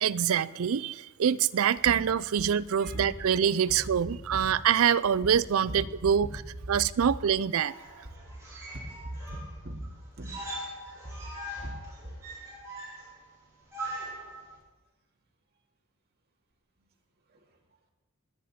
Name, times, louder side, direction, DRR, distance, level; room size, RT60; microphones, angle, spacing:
voice 1, 0.0-6.3 6.7-7.7, right 8 dB, 65° right, 0.4 m, -25 dB
voice 2, 2.8-3.3 4.3-4.6 5.7-6.3 6.6-7.0 8.0-10.3 10.8-11.7 12.0-12.2 16.8-16.9 17.3-17.6, right 1 dB, 45° right, 2.2 m, -40 dB
sound 1, 7.6-14.6, right 1 dB, 15° right, 5.8 m, -42 dB
20.5 x 9.2 x 4.3 m
head